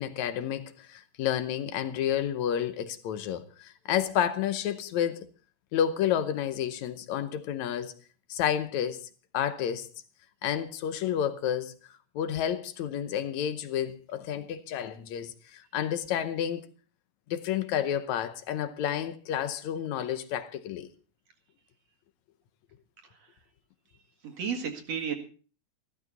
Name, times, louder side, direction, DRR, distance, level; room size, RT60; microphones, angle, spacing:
voice 1, 0.0-5.3 5.7-7.9 8.3-9.9 10.4-11.8 12.2-16.7 17.3-20.9, left 9 dB, 70° left, 1.9 m, -30 dB
voice 2, 23.0-23.3 24.2-25.1, right 7 dB, 55° right, 2.8 m, -33 dB
15.0 x 14.0 x 4.0 m
omnidirectional pair, 4.0 m